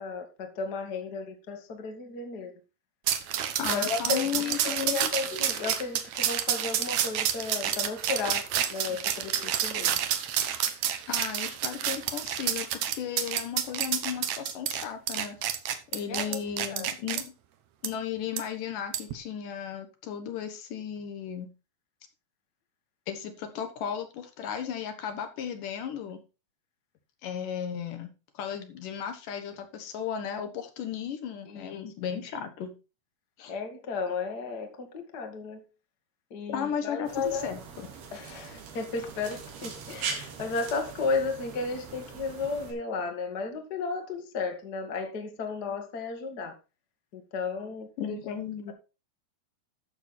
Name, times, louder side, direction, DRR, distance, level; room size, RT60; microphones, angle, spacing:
voice 1, 0.0-2.5 3.7-8.4 8.7-10.0 16.1-16.4 16.7-16.9 31.4-31.8 33.5-35.6 36.3-37.5 38.1-46.5 47.1-48.2, left 4 dB, 40° left, 1.5 m, -34 dB
sound 1, 3.1-17.2 17.8-17.9 18.4-18.5 18.9-19.1, right 10 dB, 70° right, 1.8 m, -29 dB
voice 2, 3.6-5.1 11.1-15.4 15.9-17.3 17.8-21.5 23.1-26.2 27.2-32.8 33.4-33.5 36.5-37.9 48.0-48.7, left 8 dB, 65° left, 2.5 m, -35 dB
sound 2, 37.1-42.7, right 6 dB, 90° right, 4.1 m, -41 dB
12.5 x 6.8 x 4.3 m
omnidirectional pair, 4.4 m